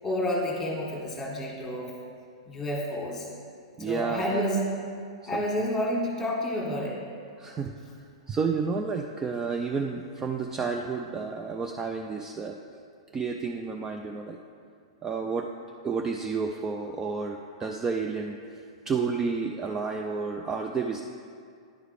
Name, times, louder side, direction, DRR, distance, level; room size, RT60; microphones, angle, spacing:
voice 1, 0.0-1.9 2.5-3.3 3.8-4.7 5.3-7.0, equal, 15° left, -2 dB, 1.7 m, -29 dB
voice 2, 3.8-4.4 5.3-5.7 7.4-7.7 8.3-12.6 13.1-14.4 15.0-15.5 15.8-21.0, right 5 dB, 15° right, 3 dB, 0.4 m, -31 dB
9.9 x 4.8 x 4.8 m, 2.3 s
figure-of-eight pair, 105°, 3 cm